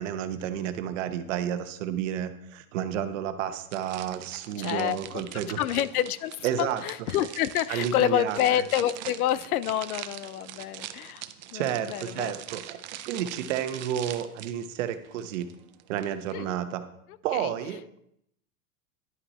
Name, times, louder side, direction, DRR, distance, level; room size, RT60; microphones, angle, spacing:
voice 1, 0.0-5.6 6.4-6.8 7.7-8.6 11.5-12.8 13.0-15.5 15.9-16.8 17.2-17.8, right 10 dB, 55° right, 9 dB, 0.9 m, -31 dB
sound 1, 3.7-16.4, right 12 dB, 35° right, 0.4 m, -43 dB
voice 2, 4.6-5.2 5.6-11.2 11.5-12.3 16.3-16.6 17.3-17.5, left 12 dB, 75° left, 17 dB, 0.6 m, -28 dB
11.0 x 5.4 x 4.2 m, 0.74 s
supercardioid pair, 160°, 45 cm